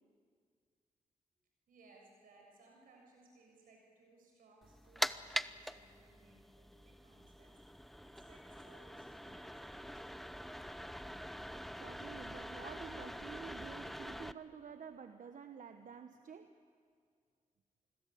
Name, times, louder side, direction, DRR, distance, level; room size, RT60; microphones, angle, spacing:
voice 1, 1.7-10.3, right 2 dB, 90° right, 1 dB, 7.0 m, -64 dB
sound 1, 4.6-14.3, equal, ahead, 0.9 m, -44 dB
voice 2, 11.8-16.5, right 6 dB, 65° right, 8 dB, 1.1 m, -50 dB
27.5 x 21.5 x 8.5 m, 2.1 s
cardioid pair, 50°, 14 cm